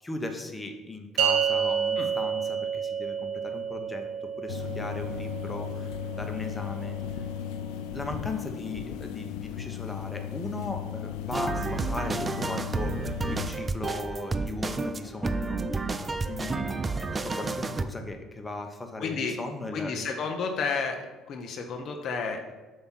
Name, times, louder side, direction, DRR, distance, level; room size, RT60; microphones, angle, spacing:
voice 1, 0.0-7.3 7.9-16.7 17.0-20.0, left 2 dB, 15° left, 5 dB, 0.9 m, -38 dB
sound 1, 1.2-7.7, right 7 dB, 85° right, 0.9 m, -30 dB
sound 2, 4.5-13.5, left 11 dB, 85° left, 0.4 m, -36 dB
sound 3, 11.3-17.8, right 3 dB, 25° right, 0.4 m, -30 dB
voice 2, 19.0-19.4 19.7-21.0 21.3-22.5, left 5 dB, 55° left, 4 dB, 0.7 m, -31 dB
7.4 x 2.9 x 5.8 m, 1.2 s
supercardioid pair, 95°, 0 cm